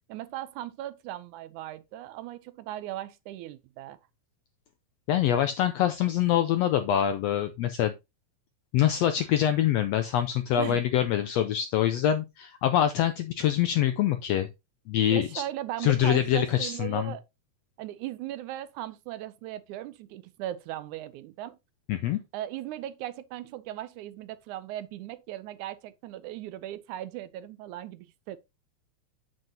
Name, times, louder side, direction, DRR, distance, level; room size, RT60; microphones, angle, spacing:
voice 1, 0.1-4.0 10.6-10.8 15.1-17.2 17.8-21.6 22.3-28.4, right 13 dB, 80° right, 2.0 m, -38 dB
voice 2, 5.1-7.9 8.7-14.5 14.9-15.4 15.8-17.1 21.9-22.2, left 11 dB, 80° left, 1.5 m, -25 dB
7.9 x 7.5 x 2.8 m
omnidirectional pair, 3.6 m